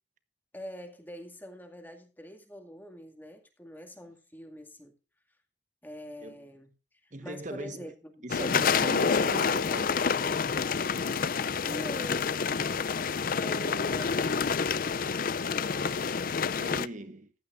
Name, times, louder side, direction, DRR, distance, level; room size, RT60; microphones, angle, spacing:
voice 1, 0.5-5.0 5.8-8.2 11.6-12.4 13.3-14.6, equal, 10° left, 2.1 m, -44 dB
voice 2, 7.1-7.9 8.2-10.8 13.5-14.3 15.7-17.3, right 2 dB, 45° right, 1.3 m, -42 dB
sound 1, 8.3-16.9, left 5 dB, 50° left, 0.5 m, -28 dB
15.0 x 12.0 x 2.5 m
head